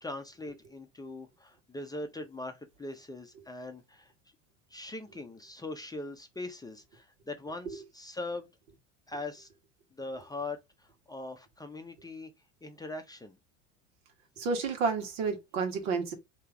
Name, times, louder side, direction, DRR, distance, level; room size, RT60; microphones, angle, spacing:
voice 1, 0.0-4.1 4.7-8.5 9.1-9.5 10.0-12.3 12.6-13.4, left 2 dB, 10° left, 0.6 m, -41 dB
voice 2, 14.4-16.1, right 4 dB, 75° right, 1.5 m, -30 dB
3.3 x 3.0 x 3.7 m
hypercardioid pair, 95°, 38 cm